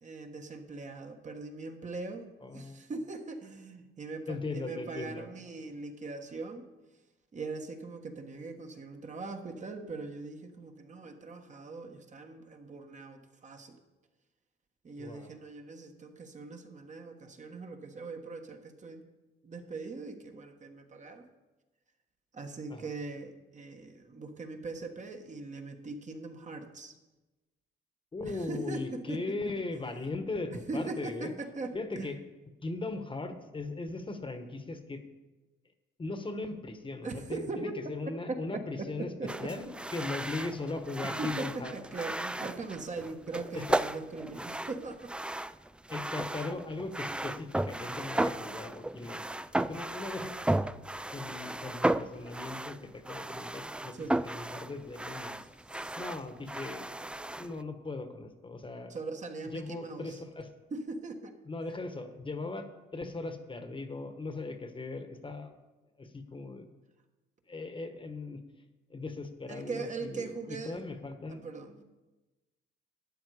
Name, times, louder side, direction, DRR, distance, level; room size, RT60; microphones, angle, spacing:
voice 1, 0.0-6.6 7.3-13.8 14.8-19.0 19.4-21.3 22.3-26.9 28.2-29.2 30.5-32.1 37.0-37.7 38.3-38.4 39.0-39.3 41.2-45.1 53.9-54.2 55.7-56.0 58.9-60.2 60.7-61.3 69.5-70.8 71.3-71.8, right 3 dB, 35° right, 5 dB, 1.5 m, -40 dB
voice 2, 2.4-2.8 4.3-5.3 15.0-15.4 22.7-22.9 28.1-31.3 31.7-32.2 32.6-35.0 36.0-39.1 39.4-41.7 43.5-43.8 45.9-50.3 51.1-54.0 54.2-55.4 56.0-56.9 57.4-58.9 59.4-60.5 61.4-65.5 66.0-66.7 67.5-68.4 68.9-71.4, left 3 dB, 25° left, 8 dB, 1.3 m, -38 dB
sound 1, 39.3-57.6, right 1 dB, 5° right, 0.3 m, -35 dB
12.0 x 8.9 x 4.9 m, 1.1 s
cardioid pair, 90°, 20 cm